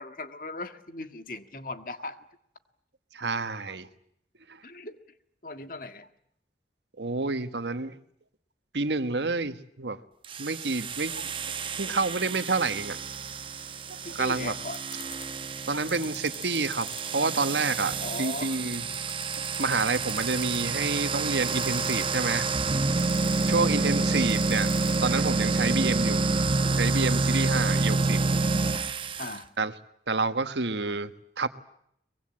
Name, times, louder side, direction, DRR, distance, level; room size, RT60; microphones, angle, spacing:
voice 1, 0.0-2.2 4.6-5.0 5.4-6.1 14.0-14.8 18.0-18.6 23.5-23.7 29.2-29.5, left 2 dB, 50° left, 8 dB, 1.7 m, -38 dB
voice 2, 3.1-3.9 4.5-4.6 7.0-8.0 8.7-10.0 10.4-11.3 11.7-13.0 13.9-14.5 15.7-18.8 19.6-22.5 23.4-26.2 26.7-28.2 29.6-29.7 30.1-31.5, right 3 dB, 85° right, 10 dB, 1.4 m, -29 dB
sound 1, 10.2-29.4, right 3 dB, 30° right, 0.9 m, -28 dB
sound 2, 14.7-15.2 15.9-17.0 17.7-17.8 18.2-18.3 18.5-20.8 21.4-22.3 23.0-23.7 24.3-25.0, left 6 dB, 25° left, 3.6 m, -41 dB
24.0 x 22.0 x 8.7 m, 0.73 s
head